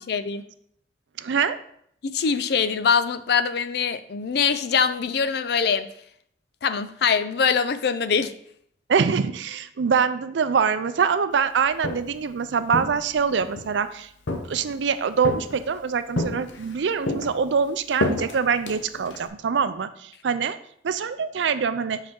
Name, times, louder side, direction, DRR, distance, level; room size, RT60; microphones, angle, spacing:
voice 1, 0.1-0.4 2.0-5.9 6.6-8.3, left 6 dB, 60° left, 12 dB, 0.4 m, -23 dB
voice 2, 1.2-1.6 8.9-20.6 20.8-22.0, right 6 dB, 75° right, 12 dB, 0.4 m, -24 dB
Walk footsteps, 11.6-12.2 12.7-13.7 14.3-14.8 15.2-15.8 16.2-16.8 17.1-19.3, left 2 dB, 85° left, 0.8 m, -30 dB
5.7 x 5.2 x 3.7 m, 0.67 s
head